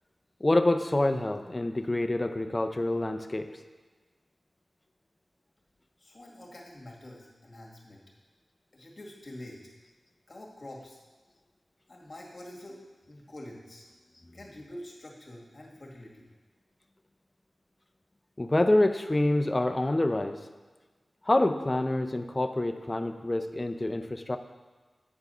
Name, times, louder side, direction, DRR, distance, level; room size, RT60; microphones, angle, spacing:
voice 1, 0.4-3.5 18.4-20.4 21.3-24.4, left 1 dB, 30° left, 8 dB, 0.6 m, -26 dB
voice 2, 6.0-8.0 8.7-9.6 10.3-11.0 11.9-12.8 13.1-13.9 14.3-16.3, left 1 dB, 50° left, -2 dB, 2.1 m, -46 dB
9.2 x 4.8 x 5.6 m, 1.3 s
cardioid pair, 45°, 0 cm